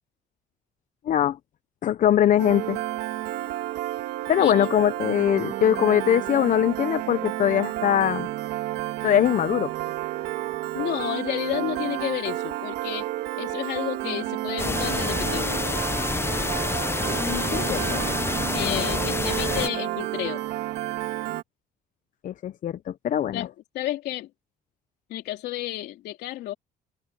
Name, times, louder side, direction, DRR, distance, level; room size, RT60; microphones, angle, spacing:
voice 1, 1.1-1.4 1.8-2.8 4.3-8.3 9.0-9.7 17.2-18.0 18.6-18.8 22.2-23.5, left 10 dB, 50° left, 0.7 m, -22 dB
Piano, 2.4-21.4, right 15 dB, 85° right, 2.4 m, -31 dB
voice 2, 4.4-4.7 10.7-13.1 13.4-15.6 18.5-20.4 23.3-24.3 25.1-26.5, left 14 dB, 75° left, 3.2 m, -31 dB
sound 1, 14.6-19.7, left 3 dB, 15° left, 0.7 m, -28 dB
cardioid pair, 110°, 17 cm